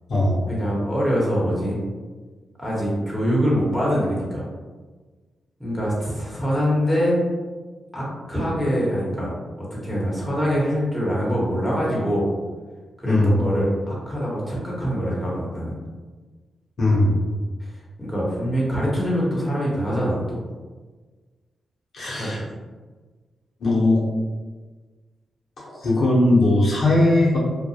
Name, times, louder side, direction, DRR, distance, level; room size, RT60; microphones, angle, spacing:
voice 1, 0.5-1.8 2.6-4.5 5.6-7.2 7.9-9.3 9.6-12.3 13.0-15.8 18.0-20.4 22.0-22.4, equal, 5° left, -6 dB, 1.1 m, -24 dB
voice 2, 13.1-13.4 16.8-17.2 21.9-22.4 23.6-24.0 25.6-27.4, left 2 dB, 65° left, -6 dB, 0.7 m, -19 dB
2.2 x 2.1 x 2.7 m, 1.4 s
cardioid pair, 55°, 0 cm